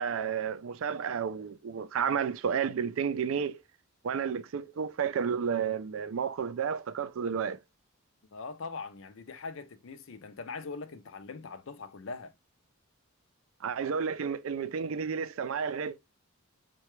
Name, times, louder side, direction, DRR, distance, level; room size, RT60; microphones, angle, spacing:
voice 1, 0.0-3.6 4.0-7.6 13.6-16.0, right 7 dB, 65° right, 0.4 m, -31 dB
voice 2, 8.3-12.3, left 4 dB, 60° left, 0.5 m, -41 dB
5.6 x 2.3 x 3.0 m
head